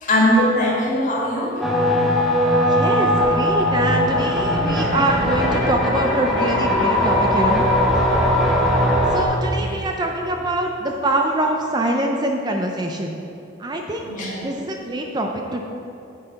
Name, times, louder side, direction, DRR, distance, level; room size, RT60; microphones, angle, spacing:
voice 1, 0.0-1.6 9.5-9.8 14.0-14.5, equal, 40° left, -4 dB, 2.0 m, -20 dB
sound 1, 1.6-9.2, left 1 dB, ahead, 1.0 m, -19 dB
voice 2, 2.7-7.7 9.1-13.2 13.6-14.1 14.4-15.6, right 1 dB, 20° right, 2 dB, 0.4 m, -24 dB
9.0 x 7.8 x 4.0 m, 2.8 s
head